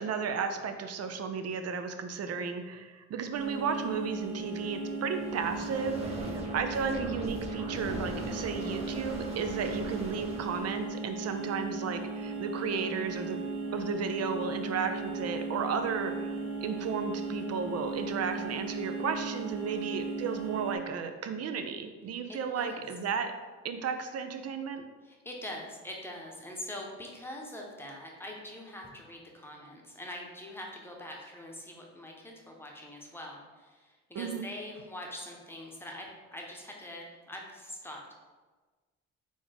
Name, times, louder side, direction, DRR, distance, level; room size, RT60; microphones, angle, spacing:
voice 1, 0.0-13.4 13.7-16.3 16.6-23.3 23.6-24.8 34.1-34.5, right 5 dB, 55° right, 7 dB, 0.5 m, -34 dB
sound 1, 3.3-20.8, right 3 dB, 35° right, 1.3 m, -37 dB
sound 2, 5.1-10.9, right 1 dB, 20° right, 0.9 m, -40 dB
voice 2, 12.6-12.9 19.7-20.1 22.3-22.9 25.0-38.0, left 1 dB, 10° left, -1 dB, 0.9 m, -44 dB
4.2 x 3.3 x 3.4 m, 1.3 s
cardioid pair, 90°, 30 cm